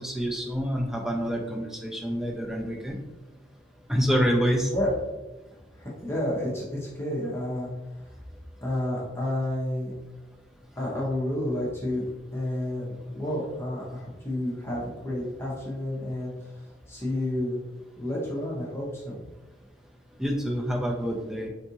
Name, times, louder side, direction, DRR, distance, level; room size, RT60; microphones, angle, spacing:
voice 1, 0.0-3.0 3.9-4.7 20.2-21.5, equal, 5° right, 1 dB, 0.4 m, -27 dB
voice 2, 5.7-7.7 8.0-8.1 8.6-9.9 10.8-12.0 12.3-17.6 18.0-19.2, left 1 dB, 15° left, -6 dB, 0.7 m, -30 dB
3.6 x 2.4 x 2.8 m, 1.1 s
head